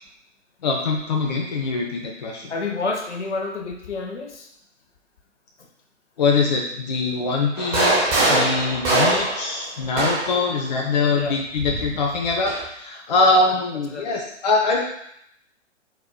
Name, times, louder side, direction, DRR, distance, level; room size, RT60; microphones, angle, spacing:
voice 1, 0.6-2.5 6.2-14.8, left 3 dB, 35° left, 0 dB, 0.5 m, -23 dB
voice 2, 2.5-4.5 5.6-5.7 10.3-10.5 11.1-11.4 13.2-13.5 13.9-14.1, left 3 dB, 65° left, 2 dB, 0.9 m, -30 dB
sound 1, 7.6-10.5 11.6-12.6, right 2 dB, 15° right, 0.8 m, -22 dB
4.3 x 4.1 x 2.2 m, 0.74 s
figure-of-eight pair, 120°, 37 cm